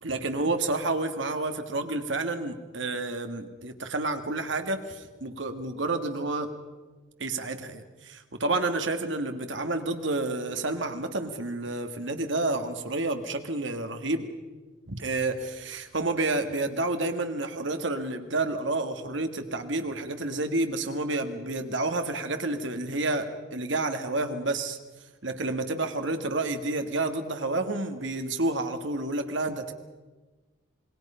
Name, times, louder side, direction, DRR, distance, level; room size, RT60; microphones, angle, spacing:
voice 1, 0.0-6.5 7.2-14.3 14.9-24.8 25.2-29.7, right 2 dB, 70° right, 7 dB, 2.0 m, -30 dB
27.0 x 20.5 x 5.7 m, 1.3 s
head